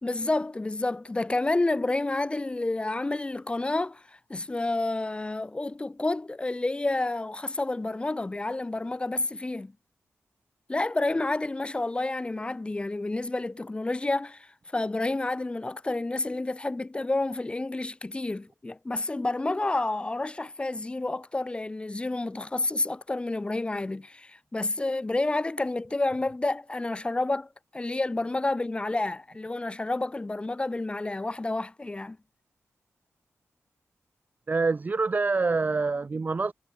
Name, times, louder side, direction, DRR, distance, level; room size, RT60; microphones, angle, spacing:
voice 1, 0.0-9.7 10.7-32.2, left 2 dB, 20° left, 1.1 m, -29 dB
voice 2, 34.5-36.5, right 4 dB, 35° right, 0.5 m, -26 dB
wide cardioid pair, 135°, 5 cm